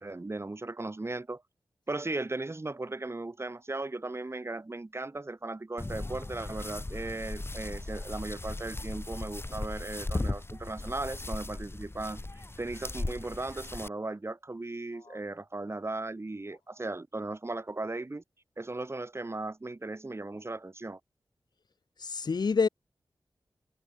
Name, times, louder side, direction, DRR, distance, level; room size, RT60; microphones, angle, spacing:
voice 1, 0.0-1.4 1.9-18.2 18.6-21.0, right 2 dB, 35° right, 2.5 m, -37 dB
sound 1, 5.8-13.9, left 2 dB, 30° left, 5.3 m, -37 dB
voice 2, 22.0-22.7, left 5 dB, 65° left, 1.4 m, -27 dB
cardioid pair, 45°, 8 cm